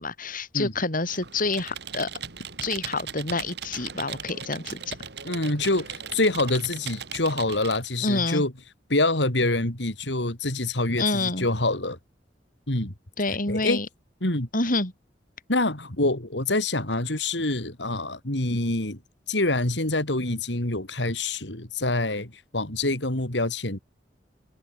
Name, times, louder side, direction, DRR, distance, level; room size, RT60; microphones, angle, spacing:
voice 1, 0.0-2.1 2.6-5.0 8.0-8.4 11.0-11.5 13.2-13.9 14.5-14.9, left 3 dB, 50° left, 6.5 m, -27 dB
Computer keyboard, 1.0-7.9, right 8 dB, 70° right, 3.5 m, -38 dB
voice 2, 5.2-8.5 8.9-12.0 12.7-12.9 13.3-13.8 14.2-14.5 15.5-19.0 19.3-23.8, left 2 dB, 75° left, 4.4 m, -26 dB
head